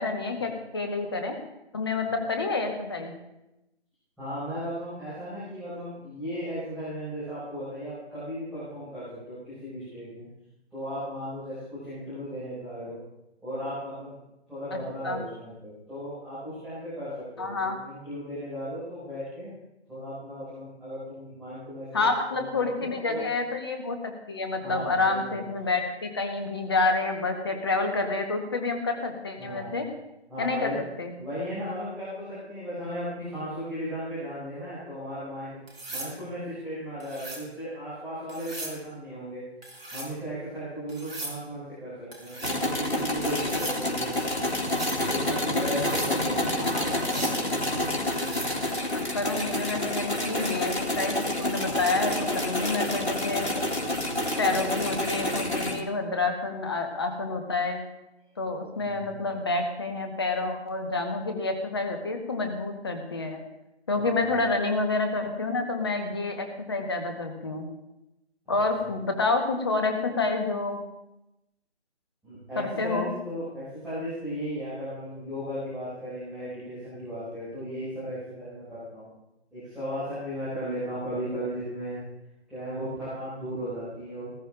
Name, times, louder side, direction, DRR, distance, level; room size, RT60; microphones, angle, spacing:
voice 1, 0.0-1.4 1.7-3.1 14.7-14.8 15.0-15.2 17.4-17.8 21.9-24.0 24.3-29.9 30.4-30.7 31.0-31.1 46.4-47.2 48.9-53.5 54.4-57.8 58.4-63.4 63.9-67.7 68.5-70.8 72.6-73.1, left 3 dB, 20° left, 5 dB, 1.2 m, -28 dB
voice 2, 4.2-10.3 10.7-13.0 13.4-14.1 14.5-19.5 19.9-23.3 24.6-25.5 29.4-29.7 30.3-30.7 31.2-35.6 35.9-39.4 39.9-44.3 45.0-47.7 58.8-59.2 64.2-64.3 68.4-68.5 72.2-79.1 79.5-82.0 82.5-84.4, equal, ahead, -16 dB, 5.2 m, -36 dB
sound 1, 35.7-36.1 37.0-37.5 38.3-38.8 39.6-40.1 40.9-41.4 42.1-42.6 43.3-43.8 44.6-45.0 45.7-46.1 46.9-47.4 48.0-48.5 50.5-50.7, right 2 dB, 60° right, 4.1 m, -38 dB
sound 2, 42.4-55.8, left 1 dB, 75° left, 2.8 m, -28 dB
19.5 x 12.0 x 2.5 m, 0.93 s
figure-of-eight pair, 155°, 34 cm